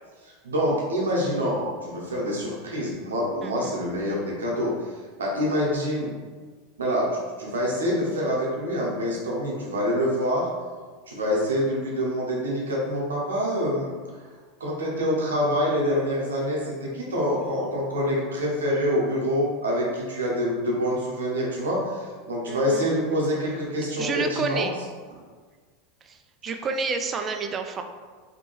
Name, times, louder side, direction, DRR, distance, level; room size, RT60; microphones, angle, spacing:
voice 1, 0.2-4.9 5.2-6.1 6.8-7.1 7.4-10.5 11.1-13.9 14.6-24.7, equal, 85° right, -3 dB, 0.7 m, -26 dB
voice 2, 3.4-3.7 22.5-23.0 24.0-24.7 26.0-26.2 26.4-27.8, right 4 dB, 30° right, 5 dB, 0.3 m, -30 dB
2.6 x 2.2 x 3.0 m, 1.5 s
hypercardioid pair, 90°, 0 cm